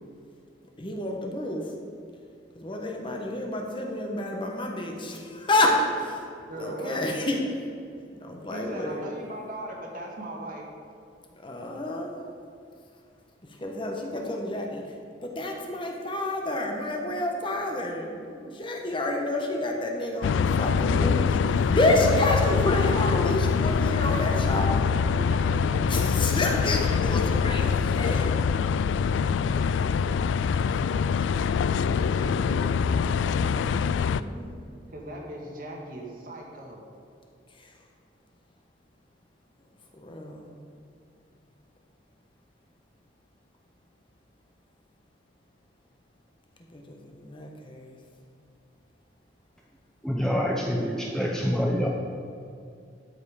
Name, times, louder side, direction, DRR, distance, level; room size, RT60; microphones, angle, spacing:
voice 1, 0.8-1.6 2.5-6.2 6.5-7.4 8.2-9.0 11.4-12.2 13.6-14.8 15.2-24.8 25.9-28.3 34.0-34.6 39.9-40.5 46.7-47.9, left 1 dB, 30° left, 1 dB, 1.1 m, -29 dB
voice 2, 6.5-7.0 8.5-10.7 25.1-25.8 26.1-26.2 32.2-33.7 34.9-36.8, right 1 dB, 50° right, -1 dB, 1.7 m, -39 dB
sound 1, 20.2-34.2, left 6 dB, 85° left, 0.3 m, -24 dB
voice 3, 50.0-51.9, equal, 5° left, -2 dB, 0.6 m, -26 dB
12.5 x 5.5 x 4.9 m, 2.4 s
head